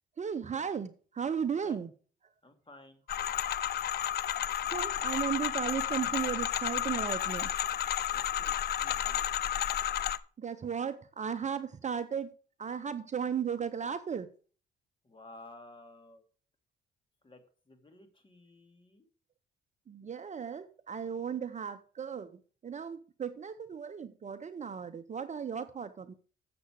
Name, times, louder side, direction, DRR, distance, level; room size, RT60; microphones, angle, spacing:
voice 1, 0.2-1.9 4.7-7.5 10.4-12.3 12.6-14.3 19.9-26.1, right 7 dB, 35° right, 0.7 m, -35 dB
voice 2, 2.4-3.0 8.1-9.2 15.0-16.3 17.2-19.1, left 2 dB, 25° left, 2.4 m, -54 dB
sound 1, 3.1-10.2, left 10 dB, 55° left, 0.5 m, -32 dB
7.8 x 6.9 x 6.3 m
cardioid pair, 90°, 20 cm